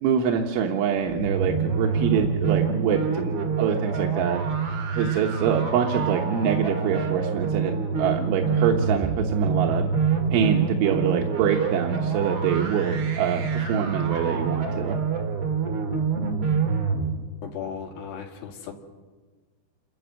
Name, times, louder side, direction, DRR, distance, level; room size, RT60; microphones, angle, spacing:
voice 1, 0.0-4.5 5.0-9.9 10.3-15.0, right 8 dB, 85° right, 2 dB, 3.6 m, -25 dB
sound 1, 1.1-17.1, right 5 dB, 45° right, 2.1 m, -26 dB
voice 2, 17.4-18.7, left 8 dB, 65° left, 1 dB, 3.9 m, -36 dB
28.5 x 12.5 x 7.5 m, 1.4 s
omnidirectional pair, 5.4 m